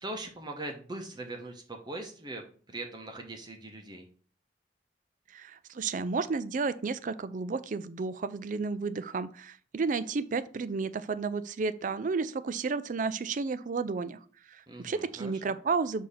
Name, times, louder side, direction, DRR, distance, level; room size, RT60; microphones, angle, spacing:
voice 1, 0.0-4.1 14.7-15.3, right 2 dB, 25° right, 3 dB, 0.7 m, -41 dB
voice 2, 5.3-14.2 14.5-16.1, right 4 dB, 45° right, 14 dB, 0.4 m, -32 dB
6.6 x 2.8 x 5.4 m, 0.43 s
head